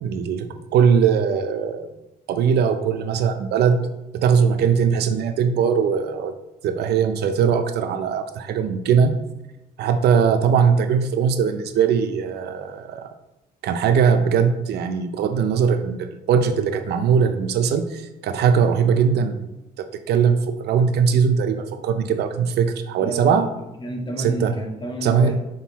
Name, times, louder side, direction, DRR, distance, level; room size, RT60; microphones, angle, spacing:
voice 1, 0.0-1.9 2.3-3.8 4.1-6.3 6.6-9.2 9.8-13.1 13.6-19.5 19.8-23.5 24.2-24.5 25.0-25.3, right 6 dB, 85° right, 8 dB, 0.6 m, -20 dB
voice 2, 23.0-25.3, right 1 dB, 25° left, 2 dB, 1.2 m, -30 dB
6.2 x 3.9 x 4.1 m, 0.96 s
cardioid pair, 125°, 17 cm